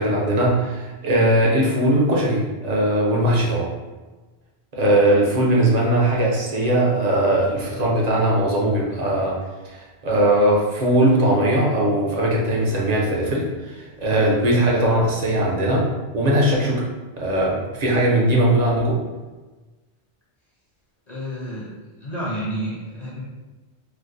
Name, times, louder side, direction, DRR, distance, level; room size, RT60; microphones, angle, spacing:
voice 1, 0.0-3.7 4.7-9.4 9.6-15.9 16.1-16.9 17.2-19.0, right 1 dB, 45° right, -3 dB, 0.7 m, -19 dB
voice 2, 21.1-21.7 22.0-23.2, equal, 45° left, -6 dB, 0.7 m, -30 dB
4.5 x 2.1 x 2.5 m, 1.2 s
omnidirectional pair, 1.1 m